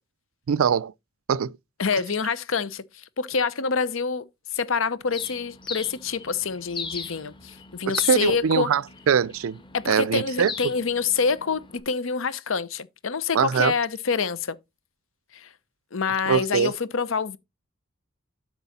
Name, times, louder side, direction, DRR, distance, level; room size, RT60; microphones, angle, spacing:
voice 1, 0.5-0.9 1.3-1.5 7.9-9.6 9.9-10.5 13.3-13.7 16.3-16.7, right 7 dB, 80° right, 0.4 m, -22 dB
voice 2, 1.8-4.3 4.5-8.7 9.7-14.6 15.3-15.5 15.9-17.4, left 5 dB, 70° left, 0.8 m, -26 dB
Bird, 5.1-11.8, left 4 dB, 25° left, 1.5 m, -39 dB
8.0 x 6.1 x 4.1 m
head